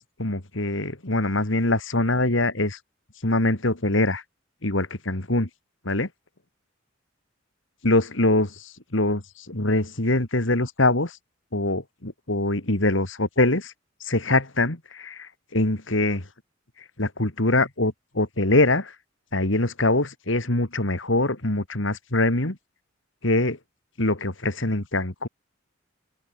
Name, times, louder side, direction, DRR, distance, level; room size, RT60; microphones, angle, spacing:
voice 1, 0.2-2.8 3.2-4.2 4.6-5.5 5.8-6.1 7.8-9.2 9.5-11.2 11.5-13.7 14.0-16.2 17.0-18.9 19.3-22.6 23.2-23.6 24.0-25.3, left 2 dB, 65° left, 2.9 m, -23 dB
open air
head